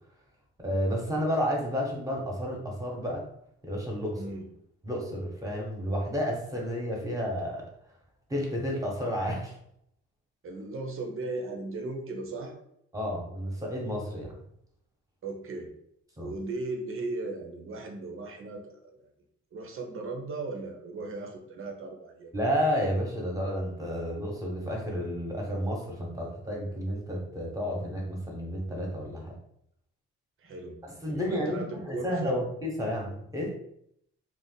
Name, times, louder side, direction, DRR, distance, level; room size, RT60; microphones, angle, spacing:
voice 1, 0.6-3.3 3.6-4.2 4.8-7.6 8.3-9.5 12.9-14.4 16.2-16.3 22.3-29.3 31.0-33.5, equal, 10° right, -1 dB, 1.1 m, -31 dB
voice 2, 4.2-4.5 10.4-12.5 15.2-15.7 16.2-19.0 19.5-22.3 30.4-32.5, right 3 dB, 45° right, 2 dB, 0.8 m, -37 dB
2.6 x 2.4 x 4.0 m, 0.72 s
cardioid pair, 90°, 30 cm